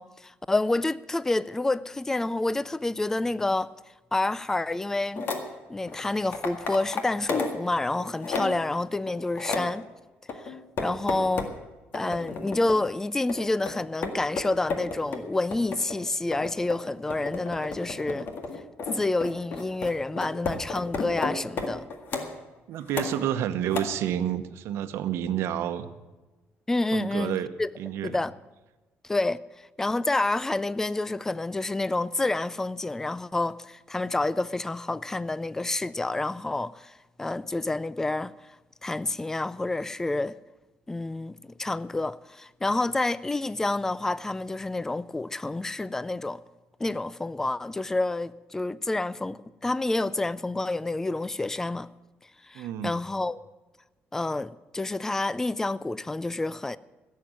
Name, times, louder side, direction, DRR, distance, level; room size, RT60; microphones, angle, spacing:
voice 1, 0.0-3.7 4.1-5.3 5.7-9.9 10.4-11.5 11.9-18.3 18.9-21.8 26.7-27.7 28.0-28.3 29.0-29.4 29.8-38.3 38.8-40.3 40.9-46.4 46.8-51.9 52.4-53.4 54.1-56.8, left 2 dB, 10° left, 0.4 m, -28 dB
sound 1, 5.2-5.4 5.9-7.6 8.0-8.7 9.1-9.7 10.3-11.6 11.9-12.8 13.3-22.3 22.9-23.4 23.7-23.8, left 4 dB, 55° left, 1.8 m, -33 dB
voice 2, 22.7-25.9 26.9-27.5 27.8-28.1 52.5-53.0, right 10 dB, 85° right, 1.0 m, -29 dB
16.0 x 7.6 x 9.2 m
cardioid pair, 130°, 4 cm